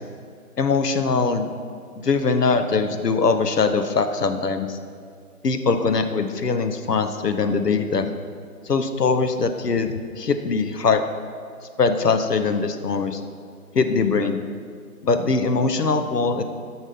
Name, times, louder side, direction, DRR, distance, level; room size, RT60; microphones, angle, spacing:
voice 1, 0.6-1.5 2.0-4.8 5.4-8.1 8.7-11.0 11.8-13.2 13.7-14.4 15.0-16.4, left 4 dB, 90° left, 8 dB, 1.0 m, -22 dB
8.7 x 6.2 x 5.5 m, 2.2 s
figure-of-eight pair, 175°, 46 cm